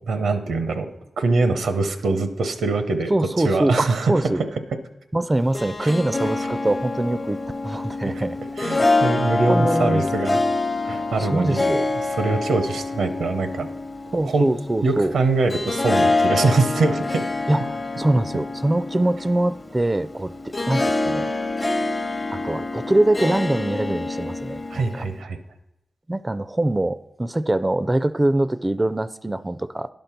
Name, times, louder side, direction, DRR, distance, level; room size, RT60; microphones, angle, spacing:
voice 1, 0.1-3.1 3.4-4.4 4.7-4.8 5.8-5.9 8.0-8.2 8.6-10.4 10.8-11.7 12.2-13.7 14.2-14.5 14.8-17.3 24.7-25.4, right 3 dB, 90° right, 9 dB, 0.8 m, -23 dB
voice 2, 3.1-4.4 5.1-7.4 7.6-8.4 8.7-9.0 9.5-10.1 11.2-11.9 14.1-15.1 17.5-21.3 22.3-25.0 26.1-29.9, right 1 dB, 25° right, 15 dB, 0.4 m, -23 dB
Harp, 5.3-25.2, left 2 dB, 35° left, 0.8 m, -26 dB
10.5 x 5.3 x 5.8 m, 0.93 s
cardioid pair, 45°, 0 cm